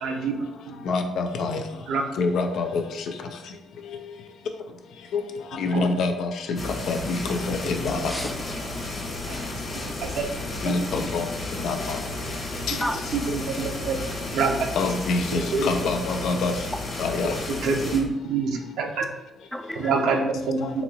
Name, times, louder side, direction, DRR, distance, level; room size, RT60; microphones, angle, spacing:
voice 1, 0.0-0.4 0.7-0.8 1.9-2.0 5.7-5.8 9.3-9.4 10.0-10.2 10.7-10.8 13.1-14.0 14.3-14.6 15.3-15.6 17.6-19.1 19.8-20.6, right 4 dB, 90° right, 2 dB, 0.6 m, -26 dB
voice 2, 0.9-1.6 2.2-2.8 5.1-5.2 5.6-6.6 6.9-8.1 10.6-11.2 11.6-12.0 12.7-12.8 14.8-16.5 17.0-17.3 20.2-20.3 20.6-20.7, left 3 dB, 75° left, 5 dB, 0.4 m, -26 dB
sound 1, 6.6-18.0, left 2 dB, 50° left, 1.0 m, -33 dB
voice 3, 7.9-8.9 12.8-13.5 19.5-20.0, equal, ahead, 7 dB, 0.4 m, -34 dB
4.1 x 2.7 x 2.7 m, 0.86 s
cardioid pair, 90°, 0 cm